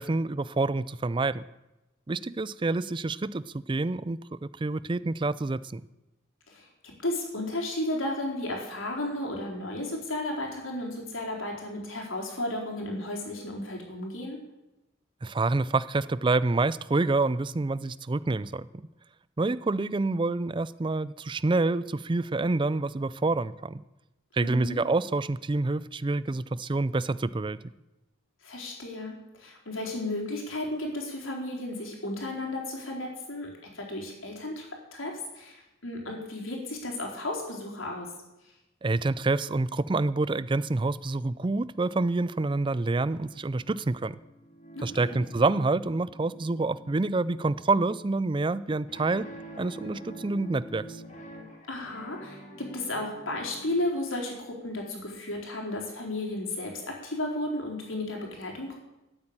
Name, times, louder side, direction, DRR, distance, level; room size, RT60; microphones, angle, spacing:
voice 1, 0.0-1.4 2.1-5.8 15.2-18.7 19.4-23.8 24.3-27.6 38.8-44.2 44.8-49.3 49.6-51.0, right 3 dB, 25° right, 18 dB, 0.4 m, -27 dB
voice 2, 7.0-14.4 24.4-24.8 28.4-38.1 44.7-45.2 51.7-58.8, left 1 dB, 90° left, 0 dB, 4.3 m, -34 dB
sound 1, 43.0-53.8, right 1 dB, 35° left, 3.0 m, -47 dB
13.5 x 8.9 x 8.8 m, 0.96 s
head